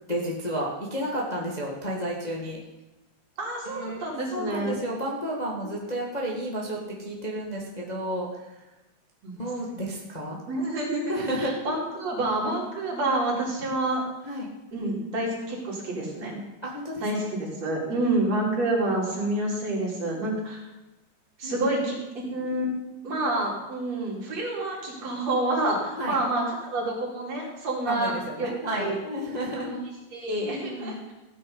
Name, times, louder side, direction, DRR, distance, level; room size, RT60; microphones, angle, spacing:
voice 1, 0.1-2.6 3.7-8.5 9.4-10.4 11.1-11.7 14.2-14.5 16.6-17.0 17.6-18.1 21.4-21.6 26.0-26.2 27.9-29.7 30.4-31.0, equal, 15° left, -3 dB, 1.6 m, -32 dB
voice 2, 3.4-4.8 9.2-9.3 9.7-9.8 10.4-14.0 14.7-16.4 17.0-20.7 21.4-28.1 28.4-29.0 29.6-29.8 30.1-31.1, right 2 dB, 60° right, -3 dB, 4.5 m, -28 dB
15.0 x 9.5 x 5.6 m, 1.0 s
omnidirectional pair, 3.4 m